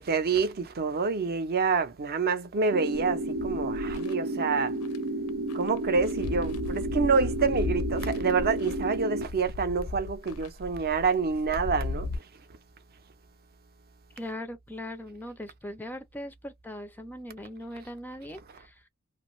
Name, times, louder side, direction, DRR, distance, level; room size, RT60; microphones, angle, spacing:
voice 1, 0.0-4.7 5.5-12.1, right 4 dB, 45° right, 0.6 m, -27 dB
sound 1, 2.7-9.2, right 1 dB, 90° right, 0.8 m, -32 dB
sound 2, 2.9-4.1 4.8-5.0 5.3-12.2, left 3 dB, 85° left, 0.5 m, -36 dB
voice 2, 14.2-18.9, left 1 dB, 10° left, 0.4 m, -40 dB
2.5 x 2.3 x 3.0 m
head